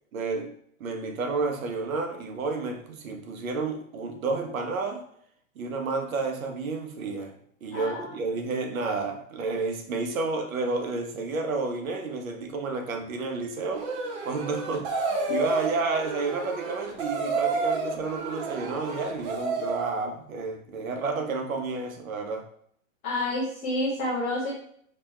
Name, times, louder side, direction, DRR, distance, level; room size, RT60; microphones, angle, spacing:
voice 1, 0.1-0.5 0.8-5.0 5.6-7.3 7.6-22.4, right 3 dB, 75° right, 4 dB, 0.9 m, -31 dB
voice 2, 7.7-8.1 23.0-24.5, left 1 dB, 10° left, -8 dB, 0.3 m, -29 dB
sound 1, 13.7-19.9, right 3 dB, 35° right, 0.6 m, -30 dB
5.0 x 2.9 x 2.3 m, 0.65 s
hypercardioid pair, 135°, 41 cm